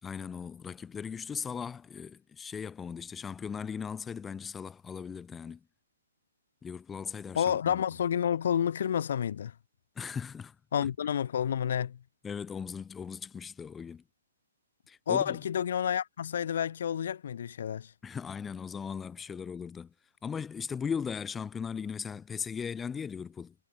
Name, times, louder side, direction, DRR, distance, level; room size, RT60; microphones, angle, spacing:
voice 1, 0.0-5.6 6.6-7.8 9.9-10.9 12.2-14.0 14.9-15.4 18.0-19.9 20.2-23.5, left 6 dB, 10° left, 3.0 m, -38 dB
voice 2, 7.4-9.5 10.7-12.0 15.1-17.9, left 9 dB, 60° left, 3.8 m, -29 dB
hypercardioid pair, 140°, 0 cm